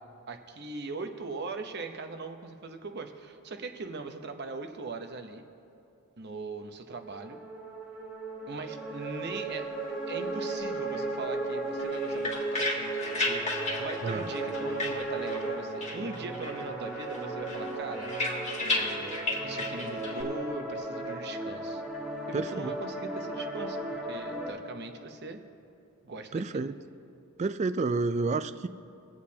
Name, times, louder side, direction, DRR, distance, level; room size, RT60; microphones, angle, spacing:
voice 1, 0.3-5.4 6.2-7.4 8.5-9.7 10.1-18.1 18.6-21.8 22.3-25.4 26.0-26.7, right 3 dB, 50° right, 6 dB, 0.8 m, -40 dB
sound 1, 7.0-24.5, right 2 dB, 5° right, 1.5 m, -35 dB
sound 2, 11.8-15.5 15.8-16.7 17.0-20.2, left 2 dB, 30° left, 1.7 m, -34 dB
voice 2, 22.3-22.8 26.3-26.8 27.4-28.7, right 3 dB, 30° right, 11 dB, 0.3 m, -30 dB
23.5 x 8.5 x 2.8 m, 2.7 s
head